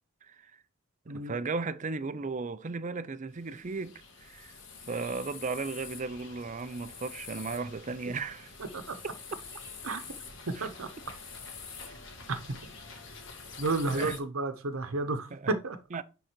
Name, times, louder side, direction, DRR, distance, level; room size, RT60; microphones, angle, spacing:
voice 1, 0.2-0.5 1.1-4.6 4.8-8.5 10.6-10.7 13.9-14.2 15.3-15.5 15.9-16.0, right 4 dB, 35° right, 0.5 m, -36 dB
sound 1, 3.3-14.2, left 4 dB, 60° left, 1.9 m, -46 dB
voice 2, 13.6-15.8, right 3 dB, 85° right, 0.9 m, -31 dB
10.0 x 3.9 x 4.5 m
head